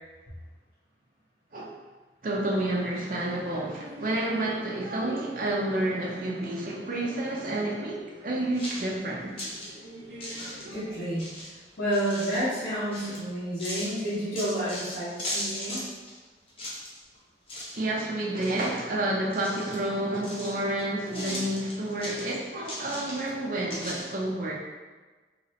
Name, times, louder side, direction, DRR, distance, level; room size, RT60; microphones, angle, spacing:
voice 1, 2.2-9.3 17.7-24.5, right 1 dB, 50° right, -3 dB, 0.6 m, -30 dB
sound 1, 2.8-11.2, equal, 75° right, 0.9 m, -46 dB
sound 2, 8.5-9.7 10.2-10.8 11.2-12.5 12.9-13.2 13.6-16.2 16.5-17.2 17.5-17.9 18.2-19.0 19.3-20.8 21.1-23.4 23.7-24.0, left 1 dB, 30° left, 0.7 m, -37 dB
voice 2, 10.7-11.3 11.8-15.9, equal, 70° left, -16 dB, 1.3 m, -30 dB
3.0 x 2.9 x 2.9 m, 1.3 s
head